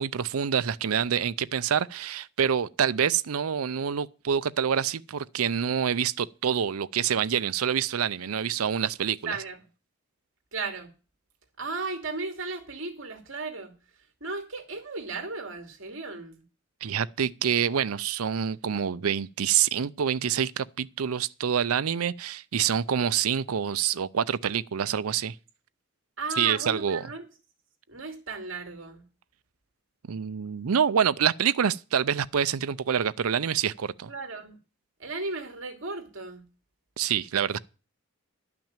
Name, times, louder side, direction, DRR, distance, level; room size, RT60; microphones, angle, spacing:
voice 1, 0.0-9.4 16.8-25.4 26.4-27.0 30.1-34.1 37.0-37.6, right 8 dB, 85° right, 0.5 m, -26 dB
voice 2, 9.3-9.6 10.5-10.9 11.6-13.7 14.2-16.4 26.2-27.2 27.9-29.0 34.1-34.6 35.0-36.5, right 3 dB, 60° right, 2.7 m, -35 dB
11.5 x 6.0 x 8.9 m
head